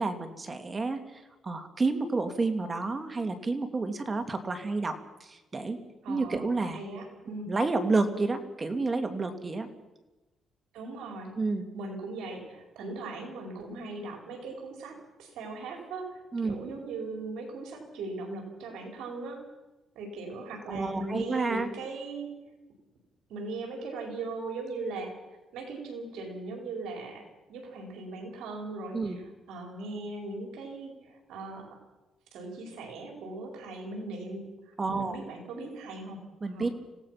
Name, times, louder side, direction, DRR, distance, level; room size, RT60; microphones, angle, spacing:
voice 1, 0.0-5.8 6.1-6.8 7.5-9.7 11.4-11.6 16.3-16.6 20.7-21.7 28.9-29.2 34.8-35.2 36.4-36.7, right 3 dB, 30° right, 7 dB, 2.6 m, -30 dB
voice 2, 6.0-7.5 10.7-11.3 11.7-19.4 19.9-22.4 23.3-25.1 25.5-27.2 27.5-29.2 29.5-31.8 32.3-36.2 36.5-36.7, right 3 dB, 85° right, 2 dB, 4.9 m, -39 dB
26.0 x 17.5 x 5.9 m, 1.1 s
cardioid pair, 90°, 0 cm